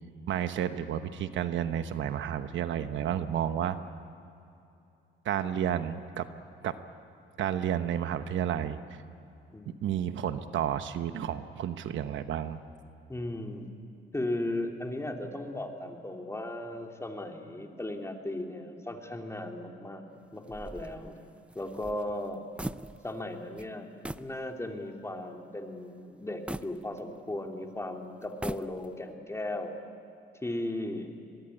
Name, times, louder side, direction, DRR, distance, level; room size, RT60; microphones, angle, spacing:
voice 1, 0.3-3.8 5.2-6.3 6.6-6.8 7.4-9.0 9.8-12.6, right 10 dB, 75° right, 10 dB, 1.1 m, -31 dB
voice 2, 13.1-13.7 14.1-20.0 20.3-21.2 21.5-22.4 23.0-29.8 30.4-31.1, left 1 dB, 15° left, 3 dB, 2.9 m, -36 dB
sound 1, 20.5-23.3 23.6-23.7 24.0-24.4 24.8-24.9 26.5-27.5 28.2-29.1, right 1 dB, 5° right, 0.6 m, -41 dB
23.0 x 21.5 x 9.9 m, 2.7 s
cardioid pair, 90°, 20 cm